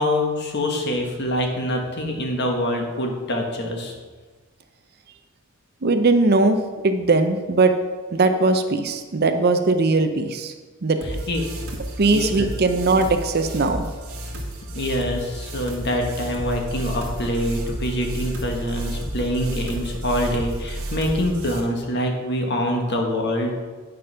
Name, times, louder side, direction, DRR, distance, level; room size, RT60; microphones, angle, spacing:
voice 1, 0.0-3.9 11.1-11.4 12.1-12.5 14.7-23.5, left 1 dB, 50° left, 2 dB, 1.4 m, -25 dB
voice 2, 5.8-7.7 8.1-10.5 10.8-11.0 12.0-13.8, right 3 dB, 45° right, 8 dB, 0.6 m, -19 dB
sound 1, 11.0-21.6, right 1 dB, 80° right, 1.5 m, -32 dB
8.8 x 5.3 x 5.6 m, 1.4 s
head